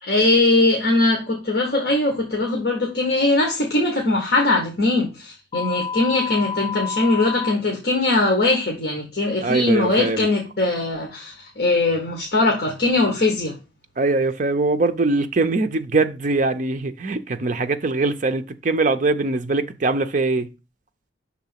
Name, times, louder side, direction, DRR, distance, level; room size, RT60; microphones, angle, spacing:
voice 1, 0.0-13.5, left 2 dB, 55° left, 1.3 m, -21 dB
sound 1, 5.5-7.5, left 6 dB, 30° left, 0.5 m, -29 dB
voice 2, 9.4-10.3 14.0-20.5, right 3 dB, 40° right, 0.5 m, -22 dB
6.0 x 3.7 x 5.7 m
head